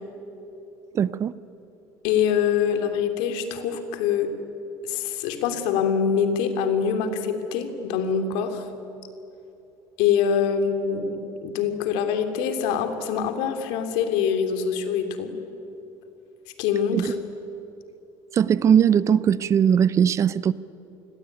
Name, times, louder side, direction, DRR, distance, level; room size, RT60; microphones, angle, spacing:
voice 1, 0.9-1.3 16.9-17.1 18.3-20.5, right 8 dB, 35° right, 17 dB, 0.6 m, -19 dB
voice 2, 2.0-4.3 4.9-8.6 10.0-15.4 16.6-17.1, left 7 dB, 80° left, 7 dB, 3.0 m, -24 dB
29.5 x 20.5 x 9.4 m, 2.9 s
cardioid pair, 135°, 9 cm